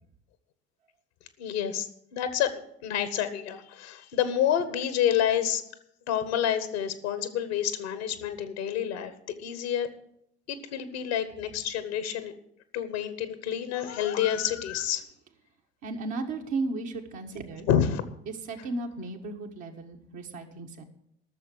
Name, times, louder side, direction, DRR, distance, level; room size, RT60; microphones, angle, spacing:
voice 1, 1.4-2.5 2.8-5.6 6.1-9.1 9.4-9.9 10.5-12.3 12.7-15.0 17.7-18.0, left 10 dB, 80° left, 11 dB, 1.2 m, -28 dB
voice 2, 15.8-17.7 18.3-20.8, right 3 dB, 65° right, 2 dB, 1.8 m, -35 dB
13.0 x 6.8 x 7.9 m, 0.73 s
hypercardioid pair, 55°, 32 cm